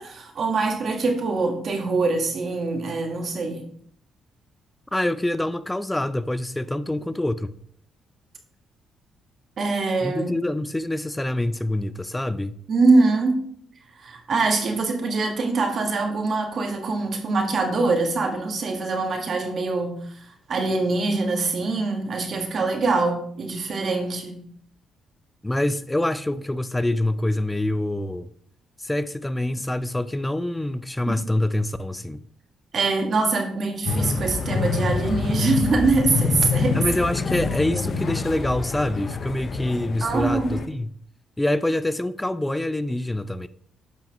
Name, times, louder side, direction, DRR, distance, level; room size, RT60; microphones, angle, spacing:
voice 1, 0.0-3.6 9.6-10.3 12.7-13.4 13.9-24.4 32.7-36.8 37.7-37.8 40.0-40.6, right 3 dB, 55° right, 1.4 m, -23 dB
voice 2, 4.9-7.5 10.0-12.6 25.4-28.3 28.8-32.2 36.7-40.9 41.4-43.5, left 1 dB, 10° left, 0.4 m, -25 dB
sound 1, 33.9-40.7, left 5 dB, 50° left, 0.7 m, -26 dB
8.8 x 5.7 x 2.9 m
cardioid pair, 90°, 0 cm